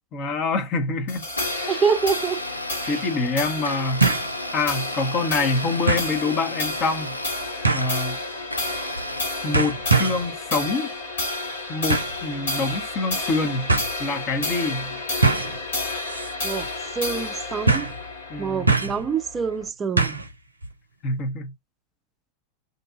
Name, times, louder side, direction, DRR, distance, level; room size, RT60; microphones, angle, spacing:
voice 1, 0.1-1.2 1.6-1.7 2.9-4.0 4.5-7.2 7.7-8.2 9.4-10.9 11.7-13.7 14.0-15.0 18.3-18.7 21.0-21.5, left 3 dB, 35° left, 0.8 m, -26 dB
sound 1, 1.1-19.7, left 2 dB, 65° left, 1.6 m, -31 dB
Domestic sounds home sounds, 1.2-9.2, left 1 dB, 85° left, 0.3 m, -34 dB
voice 2, 1.7-2.4 2.8-3.0 16.4-16.7 16.9-17.9 18.4-20.2, right 6 dB, 20° right, 0.4 m, -26 dB
sound 2, 2.1-2.2 4.0-4.3 4.8-4.9 5.9-6.1 7.6-8.0 8.9-9.2 9.5-10.3 11.9-12.2 13.2-13.3 13.7-13.9 15.2-15.6 16.1-16.3 16.6-16.7 17.7-18.0 18.7-19.1 20.0-20.3 20.6-20.7, right 3 dB, 80° right, 0.6 m, -22 dB
2.7 x 2.5 x 2.5 m
figure-of-eight pair, 90°, 0 cm